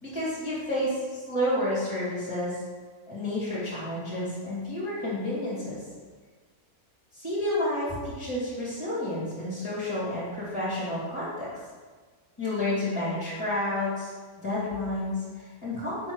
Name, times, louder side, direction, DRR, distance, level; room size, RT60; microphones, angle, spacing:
voice 1, 0.0-2.6 3.1-5.8 7.1-11.5 12.4-14.1 14.4-16.1, left 1 dB, 20° left, -9 dB, 2.6 m, -30 dB
7.6 x 6.3 x 4.8 m, 1.5 s
omnidirectional pair, 1.6 m